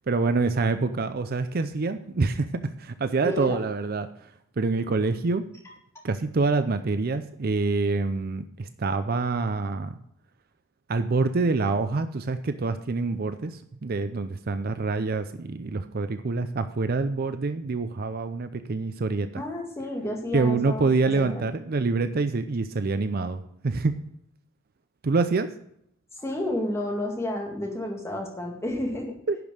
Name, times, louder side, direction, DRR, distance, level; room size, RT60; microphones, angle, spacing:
voice 1, 0.1-4.3 4.6-5.4 6.0-10.0 10.9-19.4 20.3-23.9 25.0-25.5 29.3-29.4, right 3 dB, 45° right, 10 dB, 0.5 m, -26 dB
voice 2, 3.2-3.6 6.0-6.1 19.3-20.9 21.2-21.4 26.1-29.2, left 1 dB, 15° left, 0 dB, 2.0 m, -31 dB
11.0 x 5.3 x 6.3 m, 0.71 s
head